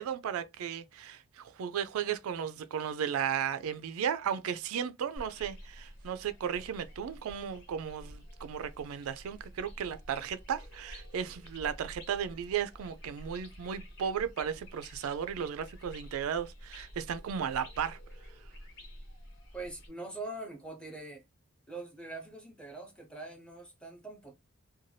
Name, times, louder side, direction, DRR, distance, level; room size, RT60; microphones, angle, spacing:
voice 1, 0.0-18.0, right 8 dB, 80° right, 0.3 m, -35 dB
sound 1, 5.2-19.9, equal, 55° left, 1.0 m, -50 dB
voice 2, 19.5-21.2 21.7-24.3, right 2 dB, 5° left, 0.6 m, -43 dB
2.6 x 2.3 x 3.1 m
head